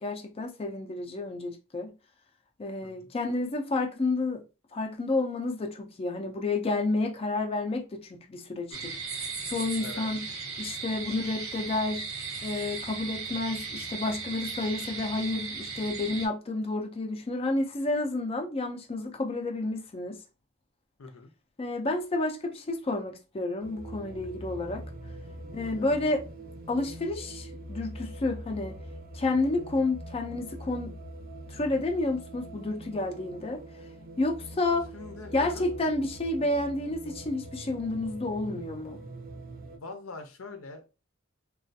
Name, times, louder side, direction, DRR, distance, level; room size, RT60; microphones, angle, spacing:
voice 1, 0.0-1.9 2.6-4.4 4.7-8.9 9.5-10.3 10.6-12.1 12.4-20.2 21.6-24.8 25.5-26.2 26.7-28.8 29.1-30.9 31.5-33.6 34.2-34.9 35.3-39.0, left 2 dB, 30° left, 0.4 m, -30 dB
sound 1, 8.7-16.3, right 4 dB, 85° right, 1.1 m, -37 dB
voice 2, 21.0-21.3 25.5-25.9 34.9-35.6 39.7-40.9, left 3 dB, 85° left, 0.6 m, -44 dB
sound 2, 23.6-39.8, right 1 dB, 45° right, 0.6 m, -43 dB
3.2 x 2.3 x 2.6 m
head